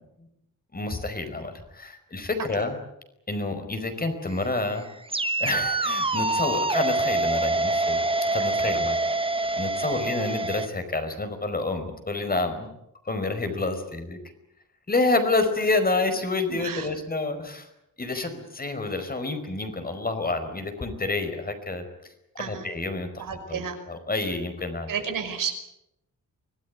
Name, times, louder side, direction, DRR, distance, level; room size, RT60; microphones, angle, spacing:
voice 1, 0.7-2.8 3.3-4.9 5.4-9.0 9.5-12.7 13.0-14.2 14.9-17.7 18.0-21.8 22.4-23.1 23.5-24.9, left 3 dB, 30° left, 8 dB, 5.0 m, -28 dB
sound 1, 4.3-10.7, right 2 dB, 15° right, 1.2 m, -26 dB
voice 2, 8.4-8.7 9.8-10.0 16.5-16.9 18.1-18.3 22.4-22.7 23.2-23.7 24.9-25.5, right 7 dB, 85° right, 6 dB, 5.6 m, -32 dB
25.0 x 19.0 x 9.6 m, 0.82 s
wide cardioid pair, 120°, 32 cm